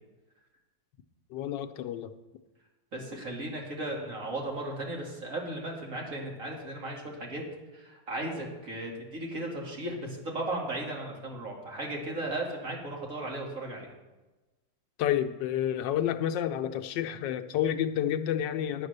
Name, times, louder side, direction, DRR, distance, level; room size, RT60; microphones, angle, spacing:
voice 1, 1.3-2.1 15.0-18.9, left 10 dB, 85° left, 9 dB, 1.4 m, -29 dB
voice 2, 2.9-7.4 7.7-13.9, right 1 dB, 45° right, -1 dB, 2.5 m, -36 dB
9.6 x 8.4 x 6.6 m, 1.1 s
omnidirectional pair, 1.9 m